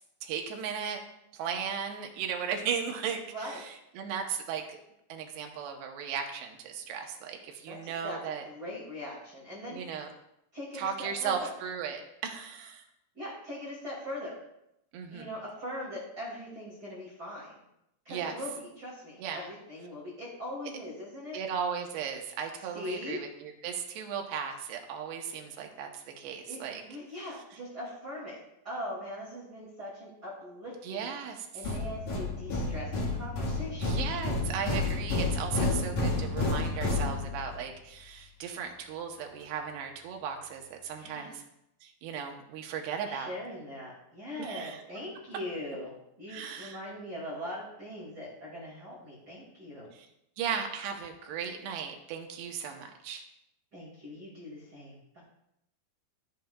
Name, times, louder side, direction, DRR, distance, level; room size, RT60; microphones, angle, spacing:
voice 1, 0.2-1.0 1.4-4.8 5.1-8.4 9.7-10.1 10.7-12.8 14.9-15.3 18.1-18.3 19.2-19.5 21.3-26.8 30.8-31.5 33.8-41.4 41.8-43.3 44.4-44.8 46.3-46.8 50.4-53.2, right 7 dB, 80° right, 3 dB, 3.1 m, -36 dB
voice 2, 3.2-3.6 7.7-10.1 10.5-11.5 13.1-14.4 15.1-17.6 18.0-21.4 22.7-23.2 26.5-28.4 28.6-31.1 31.5-34.0 41.0-41.4 43.0-49.9 53.7-55.2, left 1 dB, 30° right, -7 dB, 2.3 m, -41 dB
sound 1, 31.6-37.7, left 2 dB, 55° left, 2.7 m, -30 dB
13.5 x 7.7 x 2.4 m, 0.82 s
omnidirectional pair, 4.8 m